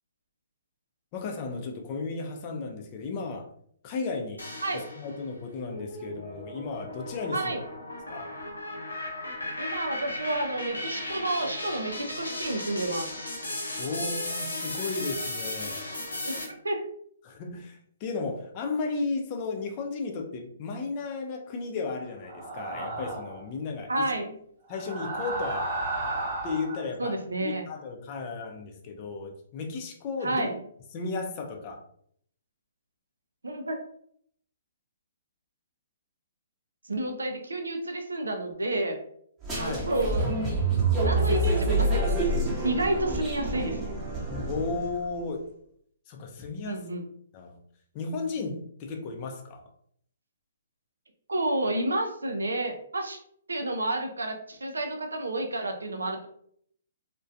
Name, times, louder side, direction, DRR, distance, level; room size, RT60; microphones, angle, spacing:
voice 1, 1.1-3.5 3.8-4.4 4.7-7.6 8.1-8.3 13.8-15.9 17.2-24.1 24.7-25.7 26.4-30.5 30.9-31.8 39.5-39.8 44.4-45.5 46.1-46.9 47.3-47.6 47.9-49.6, left 4 dB, 35° left, 2 dB, 0.5 m, -34 dB
sound 1, 4.4-5.2 5.7-16.4, left 1 dB, 90° left, 0.7 m, -36 dB
voice 2, 9.4-13.1 16.2-16.8 23.9-24.3 27.0-27.6 30.2-30.6 33.4-33.8 36.8-39.0 39.6-40.3 41.0-42.3 42.6-43.8 46.7-47.0 51.3-53.2 53.5-56.3, right 1 dB, 85° right, 4 dB, 0.4 m, -30 dB
sound 2, 22.2-23.4 24.7-26.9, right 2 dB, 55° right, 0.8 m, -33 dB
sound 3, 39.4-45.0, right 2 dB, 15° right, 0.7 m, -27 dB
2.3 x 2.2 x 2.5 m, 0.65 s
figure-of-eight pair, 130°, 0 cm